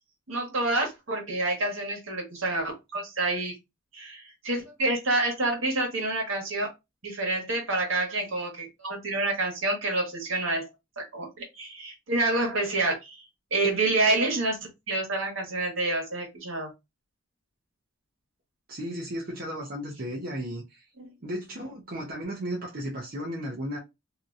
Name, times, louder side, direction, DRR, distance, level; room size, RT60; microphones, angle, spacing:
voice 1, 0.3-3.5 3.9-6.7 7.0-10.7 11.0-13.2 13.5-14.6 14.9-16.7 21.0-21.1, right 2 dB, 75° right, 1.4 m, -28 dB
voice 2, 18.7-20.8 21.2-23.8, equal, 45° right, 0.8 m, -34 dB
2.8 x 2.7 x 2.4 m
head